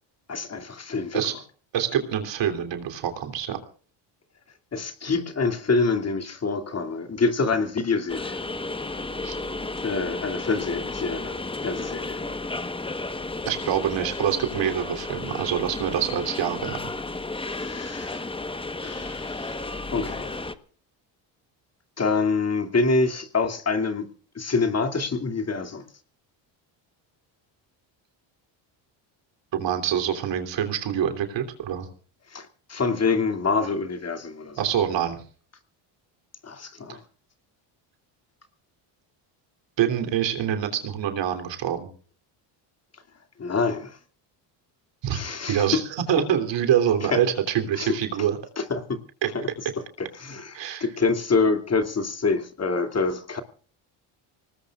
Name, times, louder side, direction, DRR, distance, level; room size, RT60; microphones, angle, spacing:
voice 1, 0.3-1.2 4.7-8.4 9.8-12.2 17.4-18.3 18.8-20.4 22.0-24.1 24.3-25.9 32.3-34.6 36.4-37.0 43.4-44.0 45.1-45.8 47.1-47.2 47.8-48.0 48.6-49.0 49.3-49.5 50.0-53.4, left 4 dB, 30° left, 2.6 m, -26 dB
voice 2, 1.7-3.6 9.2-9.3 13.4-16.8 29.5-31.9 34.6-35.2 36.9-37.0 39.8-41.9 45.0-45.2 45.5-45.8 46.1-48.4 49.2-49.3 50.5-50.9, right 9 dB, 65° right, 3.3 m, -25 dB
sound 1, 8.1-20.5, left 2 dB, 10° left, 1.1 m, -33 dB
25.0 x 19.5 x 2.4 m
cardioid pair, 95°, 48 cm